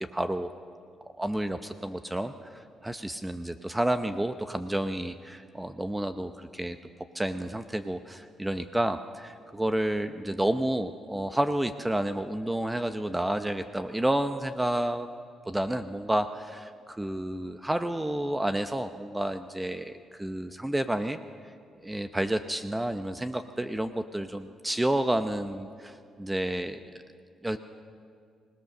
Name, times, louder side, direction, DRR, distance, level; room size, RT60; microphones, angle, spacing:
voice 1, 0.1-0.5 1.2-6.8 7.1-15.1 15.5-16.7 17.0-21.2 21.8-26.8 27.4-27.6, right 1 dB, 10° right, 9 dB, 0.8 m, -30 dB
25.0 x 18.0 x 6.7 m, 2.2 s
cardioid pair, 90°, 0 cm